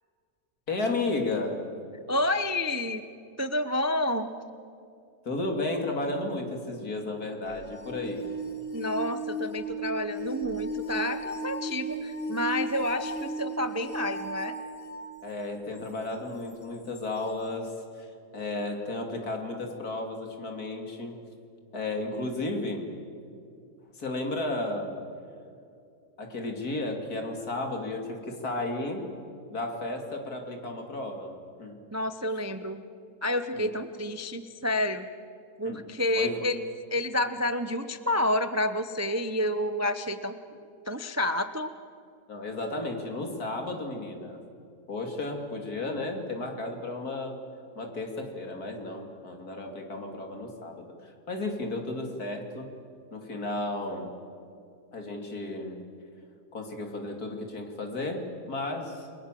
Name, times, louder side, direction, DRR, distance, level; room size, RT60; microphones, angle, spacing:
voice 1, 0.7-1.6 5.2-8.2 15.2-21.2 21.7-22.9 23.9-25.0 26.2-29.0 29.5-31.3 31.6-31.8 33.5-33.7 35.6-35.8 36.2-36.4 42.3-44.4 44.9-47.4 47.7-52.7 53.1-54.1 54.9-55.8 56.5-59.1, left 2 dB, 70° left, 3 dB, 3.3 m, -33 dB
voice 2, 2.1-3.0 3.4-4.3 8.7-14.5 31.9-32.8 33.2-35.1 35.6-36.6 36.9-40.3 40.9-41.7, left 1 dB, 15° right, 10 dB, 0.5 m, -29 dB
Tono Corto, 7.5-15.1 15.8-15.9 17.0-17.1, right 2 dB, 40° left, 2.0 m, -35 dB
29.0 x 23.0 x 7.6 m, 2.5 s
omnidirectional pair, 1.7 m